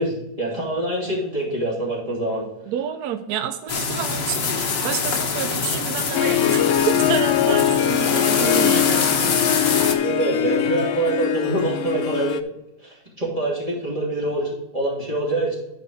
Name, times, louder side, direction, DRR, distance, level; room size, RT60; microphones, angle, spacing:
voice 1, 0.0-2.5 9.9-12.4 12.8-15.5, right 2 dB, 20° right, -5 dB, 2.8 m, -25 dB
voice 2, 2.7-9.8, right 9 dB, 70° right, 8 dB, 1.0 m, -29 dB
sound 1, 3.7-9.9, left 5 dB, 55° left, 1.3 m, -24 dB
Harp, 6.1-12.4, left 10 dB, 90° left, 0.6 m, -22 dB
11.5 x 4.8 x 4.6 m, 0.90 s
omnidirectional pair, 2.0 m